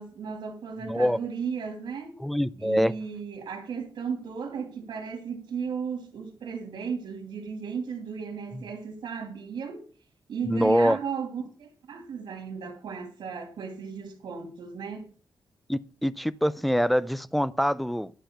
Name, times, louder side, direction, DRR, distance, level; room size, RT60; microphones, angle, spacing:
voice 1, 0.0-2.2 2.6-9.8 10.3-15.1, right 6 dB, 85° right, 2.5 m, -35 dB
voice 2, 0.8-1.2 2.2-2.9 8.5-8.6 10.4-11.0 15.7-18.1, equal, ahead, 0.5 m, -24 dB
12.0 x 5.5 x 8.6 m
wide cardioid pair, 145°, 8 cm